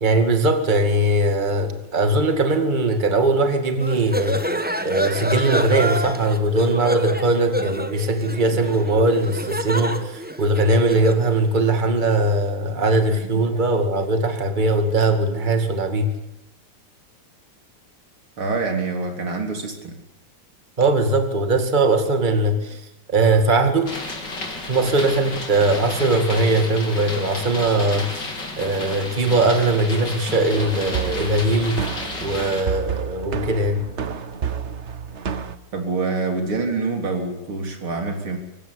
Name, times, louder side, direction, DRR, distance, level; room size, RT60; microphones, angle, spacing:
voice 1, 0.0-4.4 4.8-16.1 20.8-22.7 23.1-23.9 24.7-28.2 28.6-31.8 32.2-33.9, right 2 dB, 20° right, 6 dB, 2.3 m, -20 dB
sound 1, 3.8-11.3, right 1 dB, 5° right, 1.0 m, -28 dB
voice 2, 18.4-20.0 35.7-38.4, right 3 dB, 75° right, 3 dB, 4.5 m, -26 dB
sound 2, 23.8-32.6, left 2 dB, 55° left, 4.5 m, -32 dB
sound 3, 30.5-35.6, right 7 dB, 45° right, 1.1 m, -30 dB
24.5 x 16.0 x 9.9 m, 0.86 s
omnidirectional pair, 2.3 m